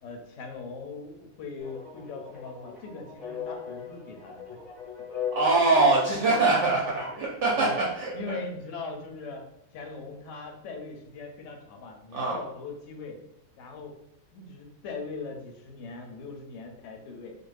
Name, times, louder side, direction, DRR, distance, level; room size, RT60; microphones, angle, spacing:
voice 1, 0.0-4.6 7.6-7.8 8.1-9.4 9.7-13.2 13.6-13.9 14.3-17.4, left 4 dB, 70° left, 3 dB, 0.9 m, -40 dB
sound 1, 1.6-7.3, left 7 dB, ahead, 0.5 m, -39 dB
voice 2, 5.3-8.1 12.1-12.4, right 3 dB, 65° right, -4 dB, 0.8 m, -23 dB
2.5 x 2.2 x 3.2 m, 0.84 s
omnidirectional pair, 1.4 m